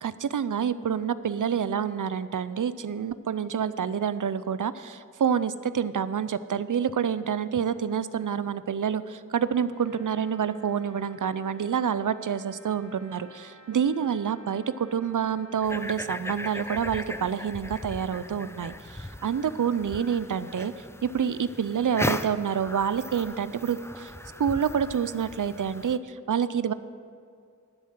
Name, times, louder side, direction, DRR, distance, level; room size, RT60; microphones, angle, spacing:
voice 1, 0.0-20.7 21.0-24.1 24.4-26.7, right 7 dB, 75° right, 15 dB, 0.5 m, -28 dB
Trumpet, 9.7-15.8, right 1 dB, 80° left, 2.6 m, -54 dB
sound 1, 15.6-26.0, left 1 dB, 10° left, 0.5 m, -37 dB
12.0 x 7.3 x 7.4 m, 2.3 s
wide cardioid pair, 45°, 32 cm